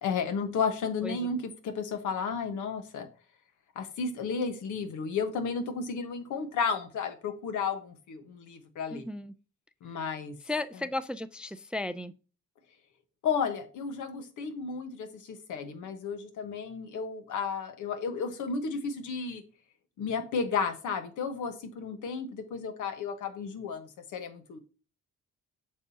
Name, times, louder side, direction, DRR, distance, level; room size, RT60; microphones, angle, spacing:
voice 1, 0.0-3.1 3.7-9.1 9.8-10.3 13.2-19.4 20.0-24.6, left 5 dB, 80° left, 1.3 m, -33 dB
voice 2, 8.9-9.3 10.5-12.1, left 2 dB, 5° right, 0.3 m, -35 dB
8.2 x 5.4 x 2.8 m
cardioid pair, 90°, 30 cm